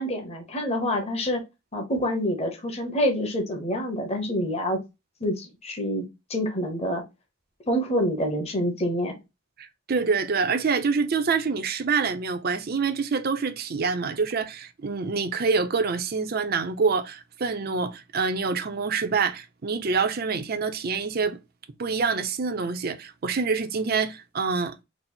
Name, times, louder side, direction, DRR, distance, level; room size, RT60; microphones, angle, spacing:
voice 1, 0.0-1.4 1.7-4.8 5.2-6.0 6.3-7.0 7.7-9.2, equal, 30° left, 0.9 m, -27 dB
voice 2, 9.6-21.4 21.8-24.8, right 5 dB, 45° right, 0.5 m, -26 dB
4.1 x 2.0 x 4.2 m
head